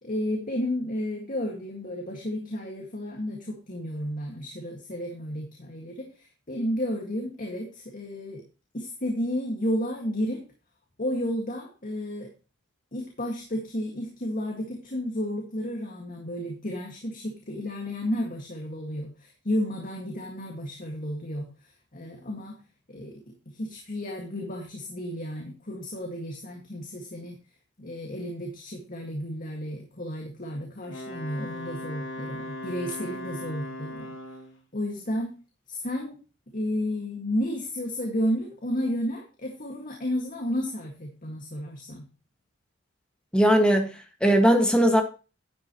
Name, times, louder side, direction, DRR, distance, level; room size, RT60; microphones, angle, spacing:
voice 1, 0.0-8.4 8.7-10.4 11.0-12.3 12.9-21.5 21.9-22.6 22.9-23.1 23.5-27.4 27.8-34.2 34.7-35.3 35.7-36.2 36.5-42.1, equal, 45° left, 1 dB, 2.0 m, -32 dB
Wind instrument woodwind instrument, 30.8-34.6, left 1 dB, 70° left, 5.4 m, -38 dB
voice 2, 43.3-43.9 44.2-45.0, equal, 5° left, 3 dB, 1.8 m, -19 dB
11.0 x 8.7 x 3.1 m, 0.33 s
head